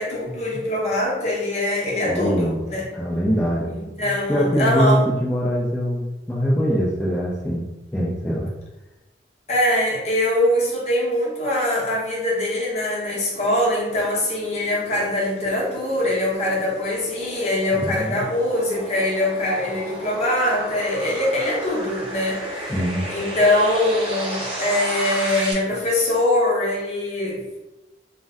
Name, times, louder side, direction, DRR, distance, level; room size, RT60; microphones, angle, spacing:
voice 1, 0.0-2.9 3.7-5.0 9.5-22.7 23.1-27.4, left 1 dB, 40° left, -4 dB, 0.7 m, -23 dB
voice 2, 2.0-2.6 2.9-7.7 7.9-8.5 17.7-18.2 22.7-23.1, equal, 10° left, -7 dB, 0.4 m, -23 dB
sound 1, 12.3-25.5, right 1 dB, 30° right, 0.8 m, -34 dB
2.5 x 2.1 x 3.5 m, 1.0 s
head